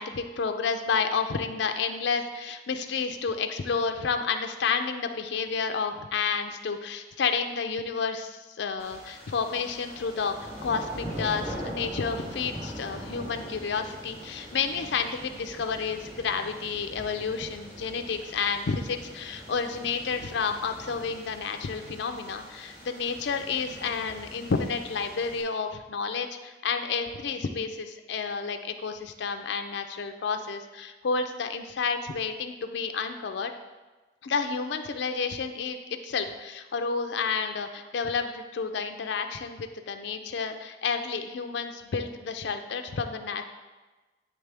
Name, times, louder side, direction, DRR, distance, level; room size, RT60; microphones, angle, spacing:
voice 1, 0.0-33.5 34.2-43.4, left 5 dB, 65° left, 6 dB, 0.4 m, -30 dB
sound 1, 8.8-25.4, equal, 30° right, 1.8 m, -42 dB
9.3 x 3.2 x 3.4 m, 1.2 s
head